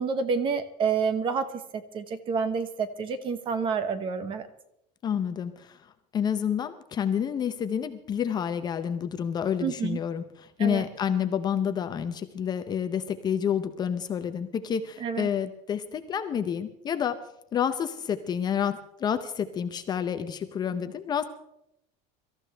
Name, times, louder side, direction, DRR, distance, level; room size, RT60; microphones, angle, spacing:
voice 1, 0.0-4.5 9.6-10.0 10.6-10.8 15.0-15.3, right 5 dB, 25° right, 12 dB, 1.0 m, -29 dB
voice 2, 5.0-5.8 6.1-17.2 17.5-21.3, left 8 dB, 20° left, 9 dB, 0.7 m, -29 dB
24.5 x 14.0 x 3.4 m, 0.80 s
cardioid pair, 175°, 19 cm